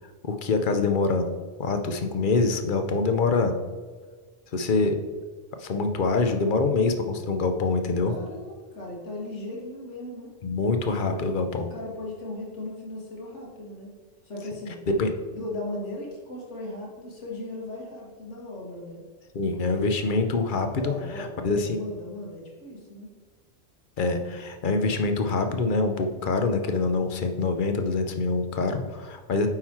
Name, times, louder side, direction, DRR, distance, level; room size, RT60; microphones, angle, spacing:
voice 1, 0.2-1.3 1.6-3.5 4.5-5.0 5.6-8.1 10.4-11.7 14.9-15.1 19.3-21.8 24.0-29.5, left 3 dB, 50° left, 7 dB, 0.7 m, -25 dB
voice 2, 8.0-10.3 11.0-11.2 11.6-13.9 14.2-14.8 15.3-19.0 19.5-20.1 20.8-23.1, left 1 dB, 75° left, -2 dB, 1.7 m, -37 dB
8.9 x 3.9 x 4.3 m, 1.4 s
omnidirectional pair, 1.2 m